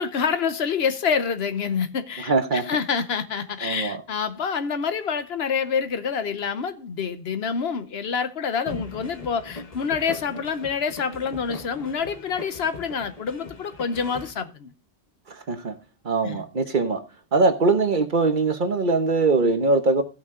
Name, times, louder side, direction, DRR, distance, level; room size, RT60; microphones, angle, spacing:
voice 1, 0.0-14.7 16.2-16.4, left 6 dB, 75° left, 1.1 m, -27 dB
voice 2, 2.3-2.7 3.6-4.0 15.3-15.7 16.0-17.0 17.3-20.0, right 3 dB, 55° right, 1.2 m, -22 dB
sound 1, 8.7-14.3, left 3 dB, 40° left, 1.2 m, -40 dB
16.0 x 5.9 x 3.7 m
omnidirectional pair, 1.0 m